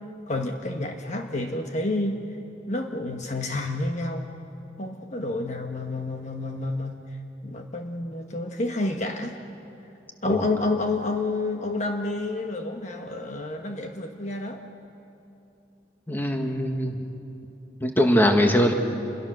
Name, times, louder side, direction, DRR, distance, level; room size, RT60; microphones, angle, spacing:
voice 1, 0.3-2.2 2.7-4.3 4.8-7.0 7.4-9.4 10.2-14.6, left 2 dB, 40° left, 4 dB, 1.2 m, -29 dB
voice 2, 16.1-17.0 17.8-18.7, equal, 10° left, 3 dB, 1.7 m, -21 dB
28.5 x 22.0 x 6.5 m, 2.8 s
head